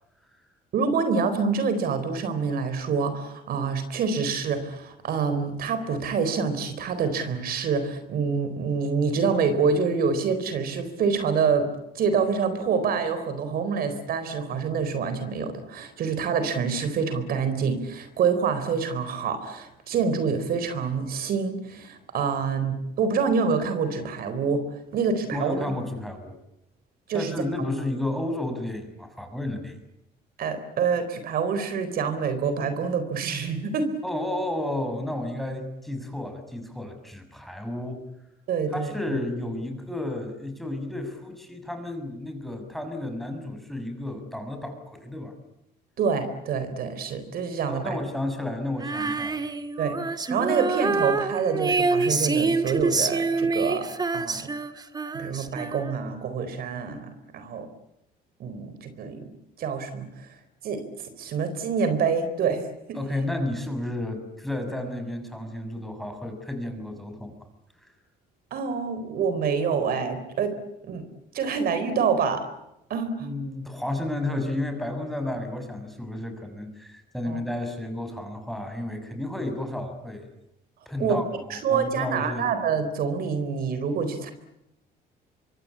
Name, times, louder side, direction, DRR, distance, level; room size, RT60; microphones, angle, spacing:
voice 1, 0.7-11.7 11.9-24.6 24.9-25.7 27.1-27.3 30.4-33.9 38.5-39.2 46.0-48.0 49.8-50.0 50.3-54.5 55.1-57.7 58.4-59.2 59.6-60.3 60.6-63.0 68.5-70.6 70.8-71.0 71.3-72.5 72.9-73.3 77.3-77.4 81.0-81.2 81.5-84.3, right 5 dB, 65° right, 10 dB, 4.2 m, -26 dB
voice 2, 25.3-26.4 27.1-29.8 34.0-38.0 38.7-45.3 47.7-49.5 62.9-67.3 67.8-67.9 73.2-80.3 80.8-81.2 81.5-82.5, left 1 dB, ahead, 6 dB, 6.5 m, -32 dB
Female singing, 48.8-56.1, right 4 dB, 25° right, 2.1 m, -26 dB
26.5 x 24.5 x 8.7 m, 0.83 s
cardioid pair, 110°, 17 cm